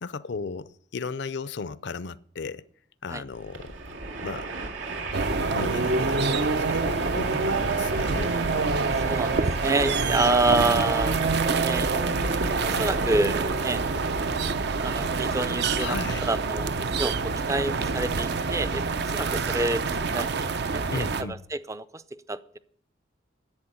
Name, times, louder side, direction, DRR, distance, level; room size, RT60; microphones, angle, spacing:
voice 1, 0.0-2.6 3.0-4.0 4.2-4.5 5.5-8.4 10.5-10.9 15.8-16.3 20.9-21.4, left 4 dB, 65° left, 0.5 m, -35 dB
Train, 3.3-20.9, right 3 dB, 90° right, 2.2 m, -36 dB
sound 1, 5.1-21.2, right 4 dB, 60° right, 0.7 m, -26 dB
voice 2, 9.0-11.1 11.6-11.9 12.7-13.8 14.7-16.0 16.3-20.5 20.7-21.1 21.5-22.0 22.3-22.6, right 2 dB, 15° right, 0.5 m, -28 dB
10.5 x 8.4 x 8.8 m
head